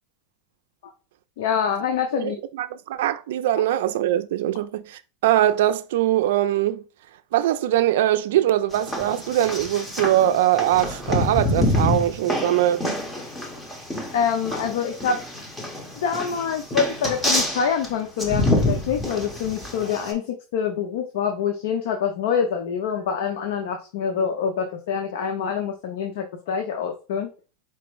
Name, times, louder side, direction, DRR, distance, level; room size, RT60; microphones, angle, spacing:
voice 1, 1.4-2.4 14.1-15.2 16.0-27.3, left 7 dB, 75° left, 0.7 m, -25 dB
voice 2, 2.1-6.8 7.3-13.0, right 13 dB, 80° right, 0.3 m, -22 dB
sound 1, 8.7-20.1, left 1 dB, 10° left, 0.8 m, -27 dB
4.5 x 2.0 x 4.5 m
supercardioid pair, 150°, 0 cm